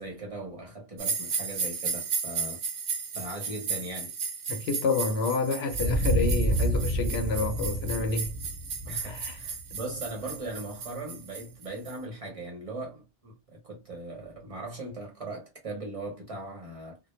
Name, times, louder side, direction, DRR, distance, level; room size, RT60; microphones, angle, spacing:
voice 1, 0.0-2.6 3.1-4.2 8.8-17.0, right 2 dB, 35° right, 0.7 m, -39 dB
sound 1, 1.0-12.0, right 5 dB, 85° right, 0.9 m, -35 dB
voice 2, 4.5-8.3 9.1-9.4, left 4 dB, 75° left, 0.8 m, -29 dB
sound 2, 5.7-10.3, right 1 dB, 40° left, 0.8 m, -29 dB
2.1 x 2.0 x 2.9 m
omnidirectional pair, 1.1 m